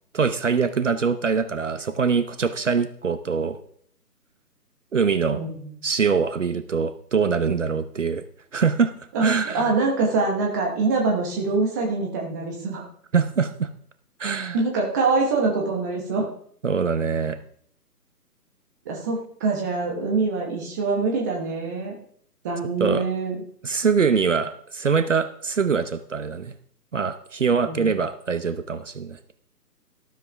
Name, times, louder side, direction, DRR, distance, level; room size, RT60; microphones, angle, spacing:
voice 1, 0.1-3.6 4.9-5.4 5.8-8.2 8.5-8.9 9.2-9.7 13.1-13.7 14.2-14.6 16.6-17.4 22.8-23.1 23.6-26.5 26.9-29.2, right 5 dB, 50° right, 10 dB, 0.9 m, -23 dB
voice 2, 5.3-5.7 9.1-12.8 14.5-16.3 18.8-22.0 22.4-23.4 27.6-27.9, right 3 dB, 10° right, 0 dB, 1.1 m, -24 dB
12.5 x 12.5 x 3.4 m, 0.62 s
figure-of-eight pair, 150°, 48 cm